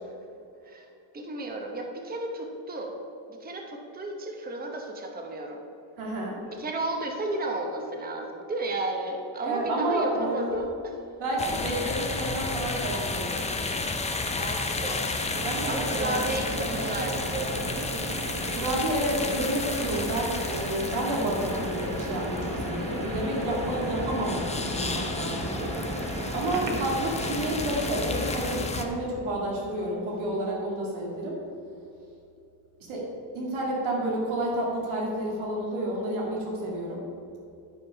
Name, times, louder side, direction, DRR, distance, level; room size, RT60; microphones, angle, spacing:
voice 1, 1.1-2.9 3.4-5.6 6.5-10.9 14.4-15.1 15.7-17.6 26.4-26.8, right 2 dB, 20° right, 2 dB, 0.9 m, -33 dB
voice 2, 6.0-6.4 9.4-10.5 11.2-13.5 15.4-16.2 16.6-16.8 18.5-25.7 26.3-31.4 32.9-33.0 33.3-37.0, right 1 dB, 80° right, -3 dB, 2.2 m, -30 dB
sound 1, 11.4-28.8, left 3 dB, 15° left, 0.5 m, -32 dB
sound 2, 15.3-28.6, right 2 dB, 40° right, 1.3 m, -36 dB
12.0 x 5.2 x 5.6 m, 2.7 s
cardioid pair, 160°, 47 cm